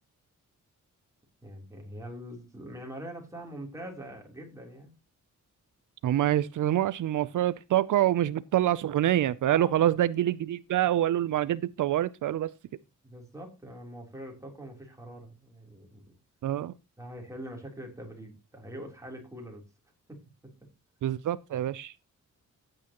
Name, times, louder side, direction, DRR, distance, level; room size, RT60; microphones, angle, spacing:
voice 1, 1.4-4.9 9.5-9.9 13.0-16.2 17.0-19.6 20.1-20.2, equal, 10° right, 3.2 m, -43 dB
voice 2, 6.0-12.5 16.4-16.7 21.0-21.9, right 12 dB, 75° right, 0.5 m, -26 dB
15.0 x 8.8 x 2.9 m
wide cardioid pair, 165°, 31 cm